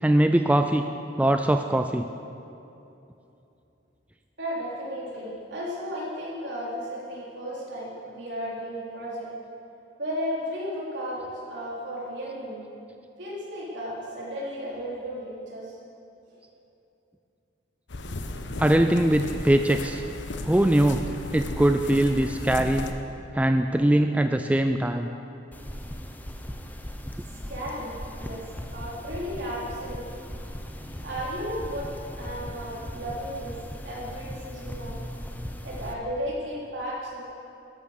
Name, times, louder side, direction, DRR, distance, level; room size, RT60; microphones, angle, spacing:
voice 1, 0.0-0.9 1.2-2.1 18.6-20.0 20.4-21.1 21.3-22.9 23.3-25.1, right 1 dB, 5° right, 6 dB, 0.4 m, -21 dB
voice 2, 4.4-9.3 10.0-12.7 13.2-15.8 27.5-30.1 31.0-31.9 32.2-33.6 33.8-35.0 35.6-37.2, equal, 65° right, -5 dB, 3.9 m, -34 dB
sound 1, 17.9-22.9, left 2 dB, 70° left, 1.0 m, -35 dB
sound 2, 25.5-35.9, equal, 10° left, 0.8 m, -38 dB
13.0 x 11.0 x 6.5 m, 2.8 s
head